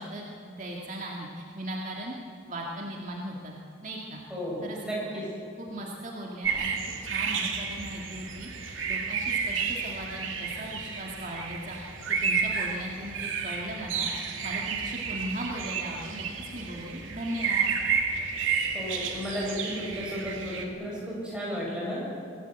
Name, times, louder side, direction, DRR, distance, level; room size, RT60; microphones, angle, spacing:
voice 1, 0.0-2.2 2.5-3.5 3.8-4.2 4.6-4.8 5.6-6.8 7.0-11.8 12.2-14.1 14.4-16.3 16.5-17.7, right 1 dB, 40° right, -2 dB, 2.2 m, -38 dB
voice 2, 4.3-5.3 18.7-22.0, equal, 5° right, -6 dB, 7.7 m, -33 dB
sound 1, 6.4-20.6, right 6 dB, 85° right, 2.5 m, -31 dB
24.5 x 17.5 x 8.2 m, 2.4 s
head